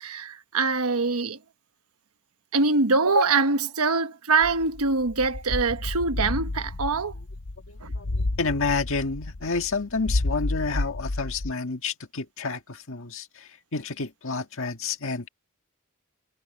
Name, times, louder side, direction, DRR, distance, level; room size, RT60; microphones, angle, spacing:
voice 1, 0.0-1.4 2.5-7.1 7.8-7.9, right 3 dB, 80° right, 1.2 m, -24 dB
sound 1, 4.4-11.5, left 2 dB, 85° left, 1.0 m, -31 dB
voice 2, 7.7-15.3, left 4 dB, 65° left, 1.8 m, -30 dB
head